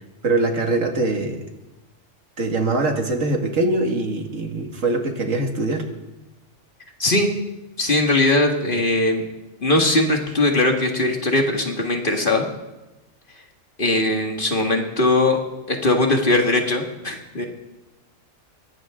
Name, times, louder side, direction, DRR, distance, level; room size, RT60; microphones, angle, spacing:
voice 1, 0.2-1.5 2.4-5.9, right 2 dB, 75° right, 3 dB, 2.3 m, -22 dB
voice 2, 7.8-9.2 9.6-12.4 13.8-15.4 15.7-17.4, left 2 dB, 40° left, 2 dB, 2.1 m, -20 dB
22.0 x 17.5 x 3.8 m, 1.0 s
omnidirectional pair, 1.3 m